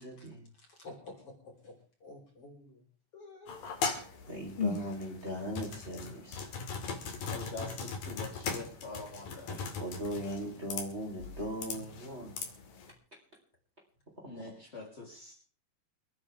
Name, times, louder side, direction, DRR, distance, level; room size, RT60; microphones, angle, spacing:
voice 1, 0.0-0.4 4.3-6.5 9.5-12.4 14.2-14.4, equal, 20° right, -2 dB, 4.5 m, -39 dB
voice 2, 0.6-2.8 3.1-3.9, left 2 dB, 40° left, 1 dB, 5.3 m, -51 dB
sound 1, 3.5-12.9, left 5 dB, 85° left, 4.2 m, -39 dB
voice 3, 7.2-9.5 14.2-15.3, left 3 dB, 20° left, -2 dB, 3.5 m, -44 dB
29.5 x 9.8 x 3.6 m, 0.43 s
omnidirectional pair, 3.8 m